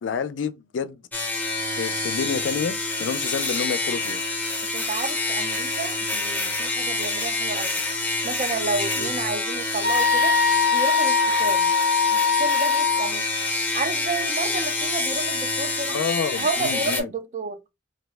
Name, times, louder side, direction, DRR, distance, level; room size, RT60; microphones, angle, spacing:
voice 1, 0.0-1.0 1.7-4.2 9.0-9.1 15.9-17.1, left 6 dB, 70° left, 0.4 m, -29 dB
sound 1, 1.1-17.0, left 2 dB, 10° left, 0.6 m, -27 dB
voice 2, 4.7-7.8 8.2-10.3 10.7-11.7 12.1-13.2 13.7-16.0 16.4-17.6, right 4 dB, 40° right, 0.4 m, -31 dB
sound 2, 9.8-13.1, left 5 dB, 75° right, 1.0 m, -21 dB
2.6 x 2.0 x 3.2 m
head